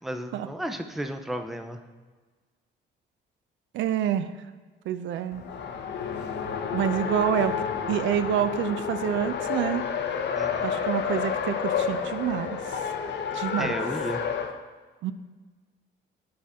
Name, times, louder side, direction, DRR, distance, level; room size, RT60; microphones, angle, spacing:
voice 1, 0.0-1.8 10.3-10.7 13.6-14.2, right 1 dB, ahead, 6 dB, 0.5 m, -33 dB
voice 2, 3.7-4.3 4.9-5.4 6.7-7.5 7.9-9.8 10.6-12.6 13.3-13.7 15.0-15.1, right 10 dB, 75° right, 11 dB, 0.4 m, -27 dB
Race car auto racing, 5.3-14.5, left 6 dB, 65° left, 0.6 m, -30 dB
8.5 x 4.2 x 3.5 m, 1.4 s
cardioid pair, 90°, 20 cm